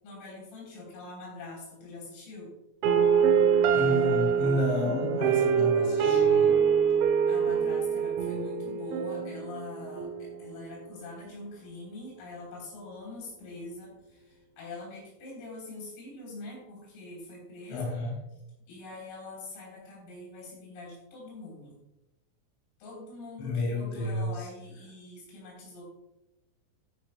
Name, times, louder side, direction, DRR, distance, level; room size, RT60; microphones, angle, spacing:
voice 1, 0.0-2.5 7.3-17.9 18.7-21.8 22.8-25.9, left 2 dB, 85° left, -3 dB, 6.3 m, -44 dB
sound 1, 2.8-10.8, right 7 dB, 80° right, 2.9 m, -25 dB
voice 2, 3.7-6.6 17.7-18.2 23.4-24.5, left 2 dB, 65° left, -4 dB, 5.2 m, -31 dB
13.5 x 10.0 x 2.2 m, 0.93 s
omnidirectional pair, 5.9 m